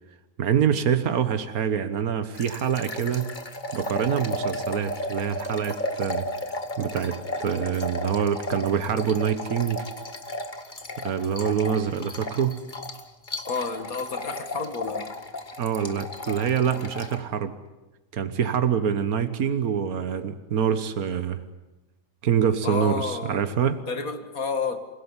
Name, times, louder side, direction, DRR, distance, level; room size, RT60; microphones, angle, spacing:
voice 1, 0.4-3.3 3.7-6.4 6.8-9.9 11.0-12.6 15.6-17.6 18.1-21.4 22.2-23.8, right 8 dB, 85° right, 10 dB, 1.7 m, -25 dB
sound 1, 2.4-17.2, left 1 dB, 35° left, 2.0 m, -34 dB
voice 2, 13.5-15.1 22.6-24.8, left 4 dB, 75° left, 8 dB, 2.5 m, -30 dB
28.5 x 17.5 x 9.7 m, 1.1 s
omnidirectional pair, 1.5 m